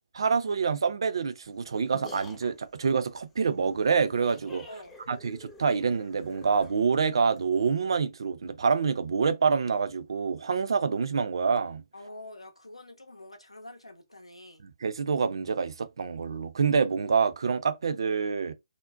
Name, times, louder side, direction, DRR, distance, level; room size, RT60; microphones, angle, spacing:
voice 1, 0.1-4.7 5.1-11.8 14.6-18.5, right 5 dB, 55° right, 0.4 m, -27 dB
sound 1, 1.4-7.5, left 2 dB, 5° left, 0.5 m, -50 dB
voice 2, 11.9-14.6, left 1 dB, 85° left, 0.7 m, -46 dB
2.5 x 2.0 x 2.5 m
figure-of-eight pair, 140°, 3 cm